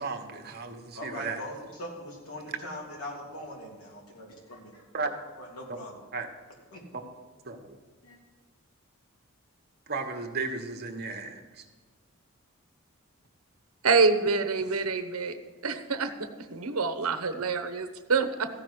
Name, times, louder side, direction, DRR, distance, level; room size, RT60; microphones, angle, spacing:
voice 1, 0.0-1.4 4.9-5.1 6.1-6.3 6.9-7.0 7.4-7.8 9.9-11.6, right 4 dB, 50° right, 5 dB, 1.3 m, -34 dB
voice 2, 0.9-4.8 5.4-6.0 6.7-6.8 8.0-8.2, equal, 75° left, -2 dB, 3.3 m, -41 dB
voice 3, 13.8-15.4 15.6-18.5, right 4 dB, 80° right, 9 dB, 1.0 m, -26 dB
14.5 x 6.1 x 8.0 m, 1.4 s
head